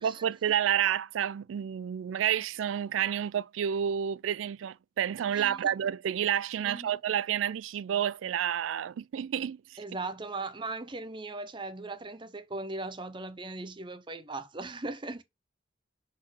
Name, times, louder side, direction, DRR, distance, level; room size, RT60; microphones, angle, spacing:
voice 1, 0.0-9.8, right 9 dB, 90° right, 0.3 m, -30 dB
voice 2, 6.6-7.0 9.8-15.2, right 3 dB, 25° right, 0.7 m, -38 dB
6.2 x 4.3 x 6.2 m
head